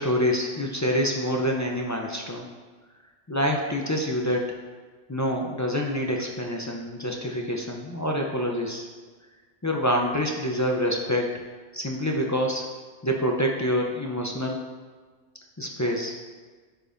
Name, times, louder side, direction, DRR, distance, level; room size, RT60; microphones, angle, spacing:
voice 1, 0.0-2.5 3.3-4.4 5.1-8.9 9.6-11.4 11.7-12.7 13.0-14.6 15.6-16.1, equal, 25° left, 0 dB, 0.4 m, -26 dB
11.0 x 5.2 x 2.6 m, 1.4 s
omnidirectional pair, 1.2 m